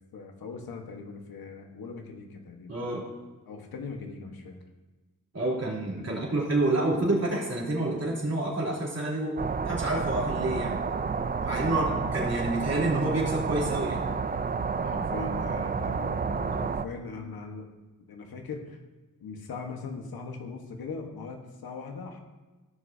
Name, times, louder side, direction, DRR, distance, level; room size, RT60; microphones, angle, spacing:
voice 1, 0.1-2.8 3.5-4.6 6.0-6.3 11.5-12.0 14.8-17.7 18.1-18.8 19.2-22.2, left 4 dB, 90° left, 3 dB, 1.3 m, -40 dB
voice 2, 2.7-3.0 5.3-9.4 9.7-10.8 11.4-11.8 12.1-14.0, right 2 dB, 45° right, -5 dB, 3.4 m, -28 dB
sound 1, 9.4-16.9, right 5 dB, 25° right, 0.4 m, -30 dB
16.0 x 6.4 x 2.7 m, 1.2 s
cardioid pair, 70°, 35 cm